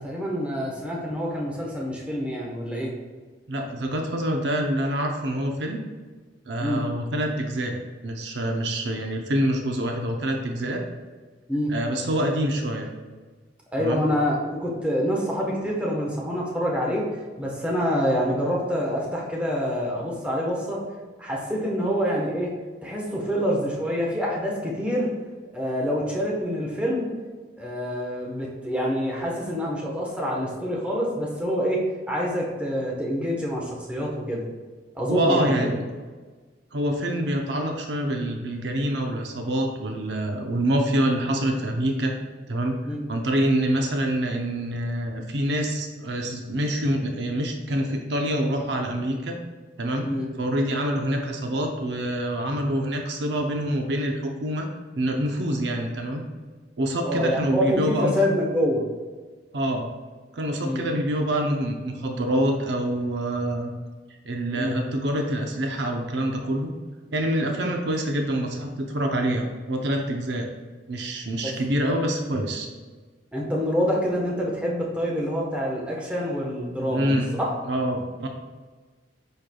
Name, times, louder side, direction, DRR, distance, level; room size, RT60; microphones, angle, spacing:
voice 1, 0.0-2.9 6.6-6.8 11.5-11.7 13.7-17.0 17.4-20.8 21.2-22.5 22.8-25.1 25.5-27.1 27.6-31.8 32.1-34.4 34.9-35.7 42.8-43.1 50.0-50.3 57.0-58.8 60.6-60.9 64.5-64.8 71.4-71.5 73.3-77.5, equal, 5° right, -3 dB, 1.1 m, -26 dB
voice 2, 3.5-5.8 6.5-7.8 8.0-10.8 11.7-12.9 13.8-14.0 35.1-35.8 36.7-42.1 42.5-42.8 43.1-49.4 49.8-50.1 50.4-54.7 55.0-56.2 56.8-58.1 59.5-59.9 60.3-63.7 64.3-66.7 67.1-70.5 70.9-72.7 76.9-77.3 77.7-78.3, right 1 dB, 65° right, 3 dB, 0.7 m, -26 dB
9.7 x 4.5 x 2.3 m, 1.4 s
head